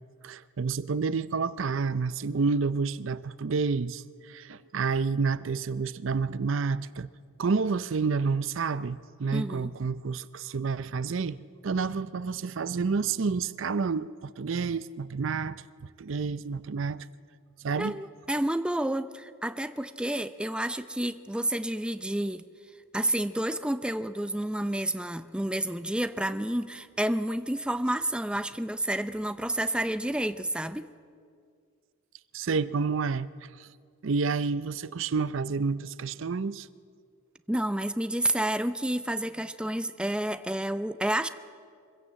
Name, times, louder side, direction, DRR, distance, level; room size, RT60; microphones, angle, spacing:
voice 1, 0.2-7.1 7.4-15.6 16.0-17.1 17.6-18.0 32.3-33.7 34.0-36.7, right 4 dB, 65° right, 0.5 m, -29 dB
voice 2, 9.3-9.7 17.8-22.4 22.9-30.9 37.5-41.3, right 1 dB, 5° right, 0.5 m, -30 dB
24.0 x 16.0 x 7.6 m
head